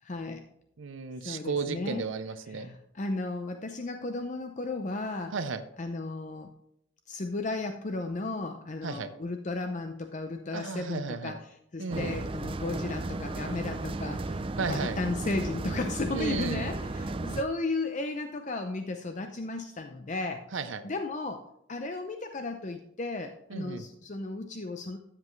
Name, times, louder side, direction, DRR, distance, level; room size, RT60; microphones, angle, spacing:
voice 1, 0.0-0.5 1.2-2.1 2.5-5.3 5.8-6.5 7.1-14.4 14.7-20.4 20.8-21.4 21.7-25.0, left 2 dB, 35° left, 6 dB, 0.5 m, -34 dB
voice 2, 0.8-2.7 5.3-5.6 8.8-9.1 10.5-11.4 11.8-12.2 14.6-15.0 16.1-16.7 20.5-20.9 23.5-23.8, right 4 dB, 70° right, 10 dB, 0.6 m, -34 dB
sound 1, 11.9-17.4, right 2 dB, 25° right, 0.4 m, -34 dB
13.0 x 7.5 x 3.1 m, 0.76 s
head